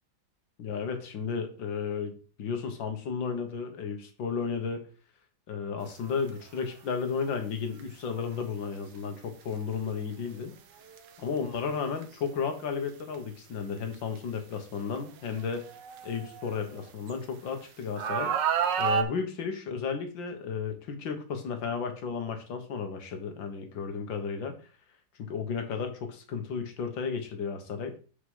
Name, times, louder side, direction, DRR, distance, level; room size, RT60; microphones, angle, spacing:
voice 1, 0.6-4.8 5.5-10.5 11.2-15.6 16.0-18.3 18.8-24.6 25.2-27.9, left 6 dB, 80° left, 6 dB, 2.0 m, -33 dB
sound 1, 6.2-6.4 7.8-7.9 10.9-11.1 12.0-12.1 13.1-13.2 13.9-14.0 15.3-17.1 18.0-19.0, right 7 dB, 75° right, 1.4 m, -29 dB
6.7 x 4.8 x 5.5 m, 0.38 s
omnidirectional pair, 2.0 m